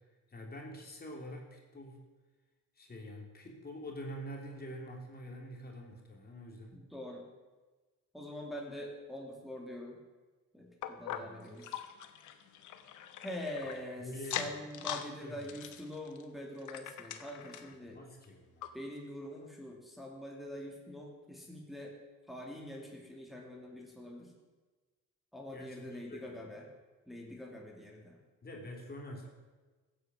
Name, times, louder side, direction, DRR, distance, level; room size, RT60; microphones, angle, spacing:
voice 1, 0.3-2.0 2.8-6.8 11.1-11.7 13.6-14.9 15.2-15.5 17.9-18.8 25.5-26.4 28.4-29.3, equal, 30° left, 0 dB, 3.1 m, -46 dB
voice 2, 6.7-7.2 8.1-10.0 10.5-11.7 13.2-14.1 14.3-18.0 18.7-21.9 22.3-24.3 25.3-26.6 27.1-28.2, left 1 dB, ahead, -2 dB, 2.7 m, -44 dB
sound 1, 10.8-13.8 14.2-15.1 15.4-17.8 18.2-18.3 18.6-18.7 19.3-19.4, left 10 dB, 80° left, 1.1 m, -42 dB
15.0 x 8.8 x 6.2 m, 1.3 s
cardioid pair, 90°, 30 cm